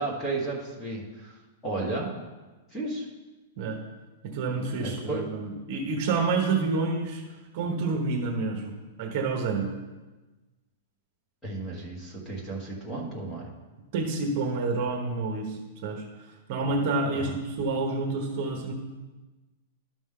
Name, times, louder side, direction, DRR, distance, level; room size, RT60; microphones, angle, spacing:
voice 1, 0.0-1.3 1.6-2.1 2.7-3.1 4.8-5.3 11.4-13.5 17.1-17.3, right 3 dB, 10° left, -3 dB, 1.5 m, -33 dB
voice 2, 4.2-7.2 7.5-9.7 13.9-16.0 16.5-18.7, right 3 dB, 40° right, 1 dB, 1.1 m, -28 dB
12.0 x 5.1 x 3.8 m, 1.2 s
supercardioid pair, 170°, 0 cm